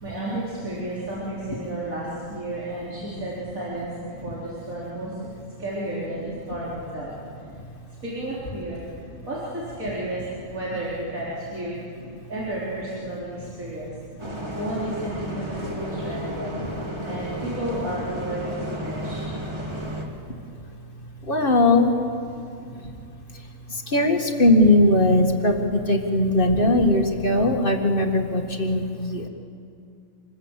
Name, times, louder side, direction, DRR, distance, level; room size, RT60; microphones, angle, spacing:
voice 1, 0.0-5.1 5.6-7.1 8.0-8.8 9.2-11.7 12.3-13.9 14.5-16.5 17.0-19.2 21.8-22.2 24.6-24.7 25.2-25.6 27.0-27.3, right 1 dB, 75° right, -7 dB, 4.4 m, -32 dB
Bus, 14.2-20.1, equal, 20° right, 2.6 m, -32 dB
voice 2, 21.2-22.1 22.6-23.0 23.3-29.3, left 1 dB, 40° left, 4 dB, 1.9 m, -20 dB
26.5 x 20.5 x 8.2 m, 2.5 s
omnidirectional pair, 1.5 m